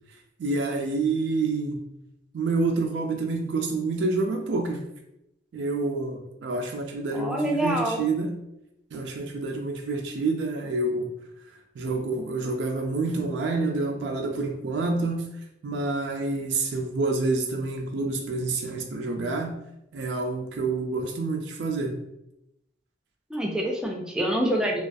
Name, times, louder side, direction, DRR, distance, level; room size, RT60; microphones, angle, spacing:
voice 1, 0.4-1.8 2.3-4.9 5.5-8.4 8.9-11.1 11.8-15.3 15.6-19.5 19.9-22.0, right 3 dB, 85° right, 3 dB, 0.3 m, -28 dB
voice 2, 7.1-8.0 23.3-24.8, equal, 5° right, -1 dB, 0.4 m, -26 dB
2.3 x 2.3 x 2.5 m, 0.85 s
head